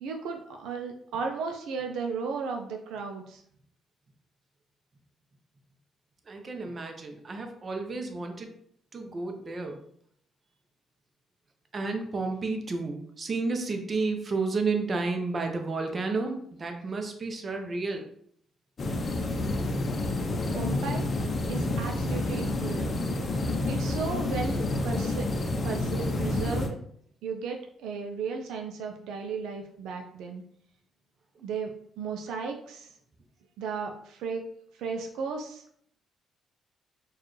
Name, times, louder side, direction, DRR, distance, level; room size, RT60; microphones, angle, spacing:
voice 1, 0.0-3.4 20.5-21.1 21.5-23.1 23.7-25.3 25.6-26.8 27.2-30.4 31.4-32.9 33.6-34.4 34.8-35.6, right 5 dB, 85° right, 2 dB, 0.4 m, -35 dB
voice 2, 6.3-8.5 8.9-9.8 11.7-18.1, right 3 dB, 40° right, 4 dB, 0.7 m, -31 dB
sound 1, 18.8-26.7, left 2 dB, 45° left, 0.6 m, -29 dB
4.5 x 2.4 x 3.1 m, 0.65 s
cardioid pair, 90°, 0 cm